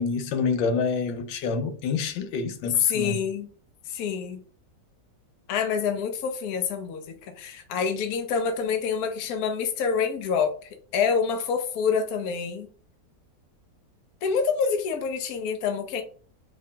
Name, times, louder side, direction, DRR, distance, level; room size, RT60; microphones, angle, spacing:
voice 1, 0.0-3.2, left 5 dB, 90° left, 1.4 m, -27 dB
voice 2, 2.6-3.5 3.9-4.4 5.5-10.5 10.9-12.7 14.2-16.0, left 6 dB, 65° left, 1.1 m, -26 dB
4.7 x 2.9 x 2.2 m
omnidirectional pair, 2.0 m